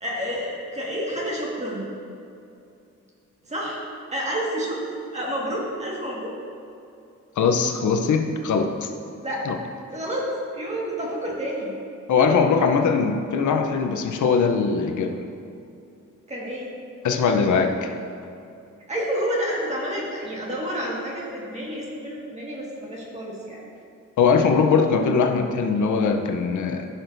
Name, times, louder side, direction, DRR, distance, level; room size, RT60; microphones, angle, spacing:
voice 1, 0.0-1.8 3.5-3.8 4.1-4.8 5.1-6.3 9.2-9.4 9.9-10.3 10.5-11.8 16.3-16.7 18.9-23.6, equal, 25° right, -4 dB, 1.8 m, -29 dB
voice 2, 7.4-8.9 9.5-9.6 12.1-15.2 17.0-17.9 24.2-26.9, left 5 dB, 90° left, 5 dB, 0.8 m, -21 dB
16.0 x 6.0 x 2.6 m, 2.6 s
wide cardioid pair, 170°, 29 cm